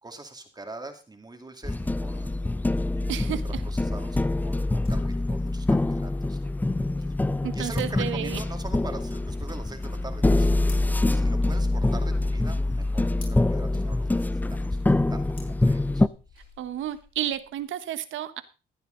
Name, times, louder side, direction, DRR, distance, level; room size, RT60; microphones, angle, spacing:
voice 1, 0.0-6.5 7.0-7.1 7.5-10.6 11.1-14.8 15.1-16.0, right 2 dB, 20° right, 5 dB, 2.3 m, -43 dB
sound 1, 1.6-16.1, left 2 dB, 10° left, 0.5 m, -25 dB
voice 2, 3.1-3.4 7.4-8.4 16.6-18.4, right 11 dB, 80° right, 13 dB, 1.2 m, -31 dB
sound 2, 4.3-17.6, left 4 dB, 45° left, 6.8 m, -56 dB
14.5 x 9.6 x 3.9 m, 0.32 s
cardioid pair, 90°, 20 cm